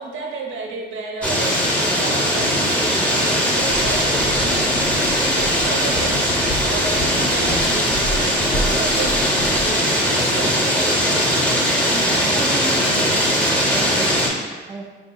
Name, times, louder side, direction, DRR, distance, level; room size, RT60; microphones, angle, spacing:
voice 1, 0.0-11.3, right 3 dB, 75° right, -1 dB, 0.7 m, -32 dB
sound 1, 1.2-14.3, equal, 5° left, 0.7 m, -19 dB
Walk footsteps, 3.6-9.7, equal, 55° left, 0.7 m, -31 dB
voice 2, 11.9-13.1 13.6-14.8, right 4 dB, 20° right, 0 dB, 0.4 m, -32 dB
4.0 x 3.7 x 2.3 m, 1.4 s
cardioid pair, 90°, 20 cm